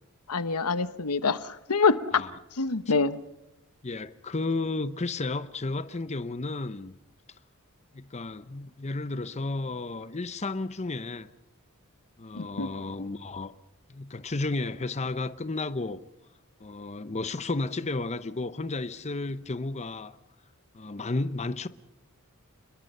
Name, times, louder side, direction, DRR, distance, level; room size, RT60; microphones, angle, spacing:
voice 1, 0.3-2.2 2.6-3.2 12.3-12.7, left 4 dB, 85° left, 1.0 m, -26 dB
voice 2, 3.8-6.9 7.9-11.3 12.2-13.5 13.9-16.0 16.6-20.2 20.7-21.7, left 3 dB, 30° left, 0.8 m, -32 dB
28.5 x 21.5 x 5.5 m
head